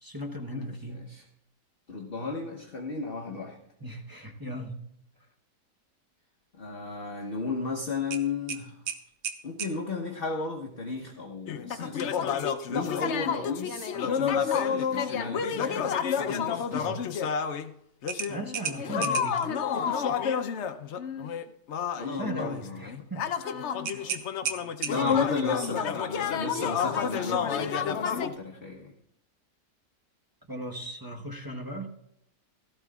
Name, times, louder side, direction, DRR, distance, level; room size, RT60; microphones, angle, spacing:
voice 1, 0.0-1.0 3.8-4.8 16.7-17.0 18.3-19.4 22.1-23.3 24.0-24.1 24.9-25.2 30.5-31.9, equal, 20° right, 2 dB, 0.6 m, -37 dB
voice 2, 1.9-3.6 6.5-8.7 9.4-12.4 12.7-16.7 21.9-22.9 24.8-28.9, left 4 dB, 40° left, 0 dB, 1.1 m, -34 dB
sound 1, 8.1-9.8 12.4-12.6 13.1-13.2 18.1-19.5 23.8-25.3, right 7 dB, 70° right, 1.3 m, -35 dB
sound 2, 11.5-17.7 18.0-28.3, left 7 dB, 65° left, 0.7 m, -30 dB
16.5 x 14.0 x 2.4 m, 0.77 s
omnidirectional pair, 1.8 m